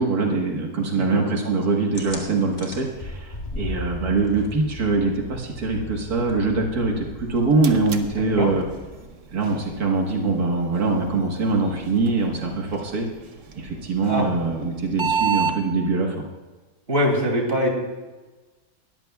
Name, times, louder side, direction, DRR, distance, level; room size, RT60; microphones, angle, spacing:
voice 1, 0.0-8.6 9.3-13.1 13.5-16.2, right 3 dB, 85° right, 0 dB, 2.0 m, -23 dB
sound 1, 1.9-9.1, left 1 dB, 30° left, 2.1 m, -37 dB
sound 2, 7.1-15.6, right 6 dB, 60° right, 1.2 m, -33 dB
voice 2, 8.2-8.5 14.0-14.3 16.9-17.7, equal, 40° right, 0 dB, 2.9 m, -23 dB
20.5 x 14.0 x 2.3 m, 1.3 s
omnidirectional pair, 1.6 m